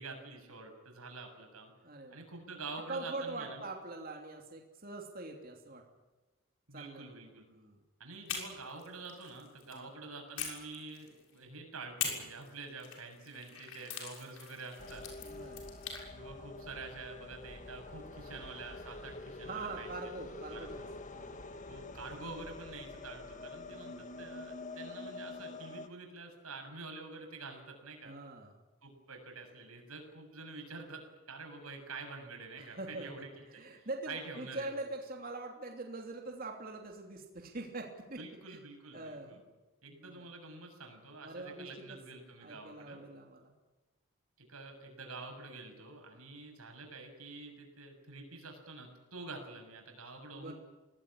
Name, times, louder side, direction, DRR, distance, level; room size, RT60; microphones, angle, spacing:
voice 1, 0.0-1.7 2.1-3.6 6.7-7.4 8.0-15.1 16.1-20.0 20.5-20.9 21.7-28.1 28.8-34.8 38.2-39.4 39.8-43.0 44.4-50.5, right 3 dB, 85° right, 4 dB, 7.0 m, -47 dB
voice 2, 1.8-2.2 2.9-5.8 6.7-7.8 9.7-9.9 15.2-15.6 19.4-20.8 21.1-21.4 23.7-24.1 28.0-28.6 32.6-33.1 33.5-38.2 38.5-38.6 38.9-39.4 40.0-40.3 41.2-42.0 42.4-43.5 50.3-50.5, right 2 dB, 40° right, 1 dB, 3.1 m, -43 dB
sound 1, 8.3-9.8 10.4-11.4 12.0-16.0, left 7 dB, 85° left, 6.6 m, -43 dB
sound 2, 14.8-25.9, left 2 dB, 35° left, 1.6 m, -46 dB
24.5 x 18.5 x 9.9 m, 1.1 s
head